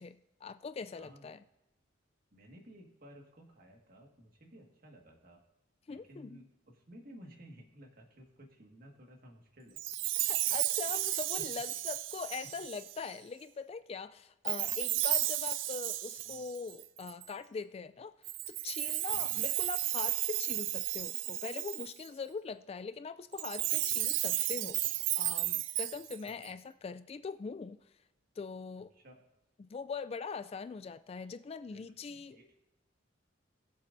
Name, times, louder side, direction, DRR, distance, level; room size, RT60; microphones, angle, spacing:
voice 1, 0.0-1.4 5.9-6.4 10.3-18.1 18.5-24.8 25.2-27.8 28.4-28.9 29.6-32.4, left 5 dB, 30° left, 13 dB, 0.3 m, -42 dB
voice 2, 0.9-1.3 2.3-5.5 5.9-9.8 11.4-11.5 16.2-16.4 19.1-19.4 26.2-26.4 28.8-29.3 31.7-32.5, equal, 50° right, 1 dB, 1.9 m, -55 dB
Chime, 9.8-13.1 14.5-17.3 18.2-22.1 23.3-26.5, right 15 dB, 70° right, 0.4 m, -33 dB
20.0 x 7.3 x 2.7 m, 0.97 s
head